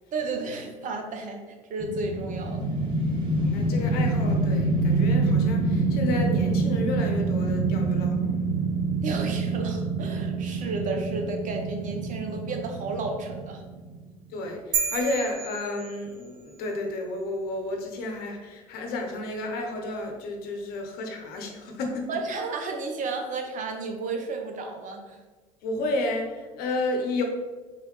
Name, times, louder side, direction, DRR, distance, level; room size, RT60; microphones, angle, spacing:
voice 1, 0.1-1.4 1.7-2.7 9.0-13.6 22.1-25.2, right 3 dB, 45° right, 4 dB, 0.7 m, -32 dB
sound 1, 1.8-14.0, right 3 dB, 25° right, 1.1 m, -26 dB
voice 2, 3.3-8.3 14.3-22.1 25.6-27.2, left 2 dB, 60° left, 2 dB, 0.9 m, -31 dB
sound 2, 14.7-16.5, right 6 dB, 80° right, 0.8 m, -31 dB
4.1 x 3.1 x 3.2 m, 1.3 s
hypercardioid pair, 70°, 18 cm